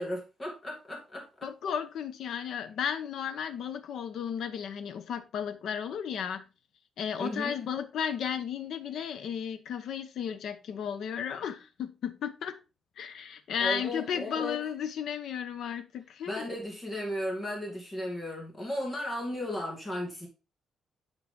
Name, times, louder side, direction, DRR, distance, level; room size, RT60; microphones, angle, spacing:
voice 1, 0.0-1.5 7.2-7.6 13.6-14.6 16.3-20.3, left 1 dB, 20° left, 2.2 m, -35 dB
voice 2, 1.4-6.4 7.0-12.6 13.0-16.5, left 8 dB, 60° left, 0.8 m, -34 dB
9.9 x 3.9 x 3.7 m
cardioid pair, 180°, 0 cm